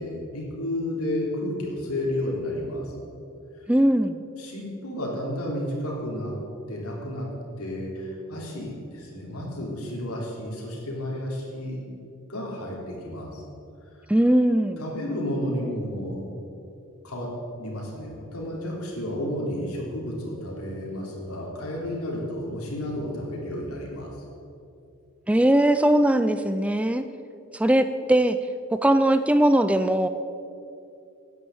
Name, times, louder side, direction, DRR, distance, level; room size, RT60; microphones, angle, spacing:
voice 1, 0.0-2.8 4.4-6.4 6.7-7.3 7.6-11.8 12.3-13.4 14.8-16.2 17.0-17.3 17.6-24.1, left 1 dB, 85° left, -2 dB, 3.5 m, -31 dB
voice 2, 3.7-4.2 14.1-14.8 25.3-27.0 27.5-28.4 28.7-30.1, right 1 dB, 5° right, 10 dB, 0.3 m, -20 dB
11.0 x 10.0 x 7.9 m, 2.6 s
head